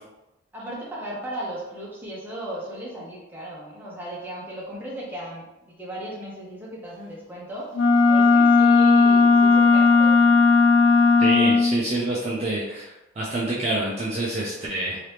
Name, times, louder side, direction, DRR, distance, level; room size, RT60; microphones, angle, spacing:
voice 1, 0.5-7.7 8.1-10.4, right 1 dB, 10° right, -6 dB, 0.8 m, -36 dB
Wind instrument woodwind instrument, 7.7-11.8, left 4 dB, 70° left, 0.3 m, -16 dB
voice 2, 11.2-15.0, right 2 dB, 35° right, -6 dB, 0.5 m, -27 dB
2.9 x 2.9 x 3.3 m, 0.96 s
head